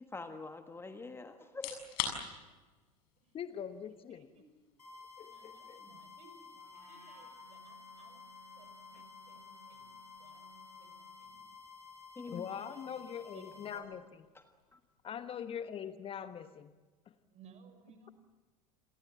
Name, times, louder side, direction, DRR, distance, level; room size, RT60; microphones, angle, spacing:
voice 1, 0.0-1.8 12.2-12.5 14.7-14.8, left 3 dB, 10° left, 7 dB, 1.5 m, -45 dB
sound 1, 1.5-16.3, left 9 dB, 50° left, 6.7 m, -49 dB
voice 2, 3.3-4.3 5.2-5.8 12.3-14.2 15.0-16.7 17.1-17.2, left 8 dB, 30° left, 11 dB, 1.2 m, -42 dB
voice 3, 4.1-4.4 5.3-6.4 6.9-8.3 8.6-11.5 12.7-13.0 13.3-14.0 15.2-15.5 17.3-18.1, right 5 dB, 35° right, 8 dB, 6.0 m, -61 dB
sound 2, 4.8-13.8, left 5 dB, 80° left, 7.0 m, -53 dB
Wind instrument woodwind instrument, 6.5-11.4, right 1 dB, 85° right, 7.2 m, -61 dB
29.5 x 23.0 x 7.6 m, 1.3 s
figure-of-eight pair, 80°, 19 cm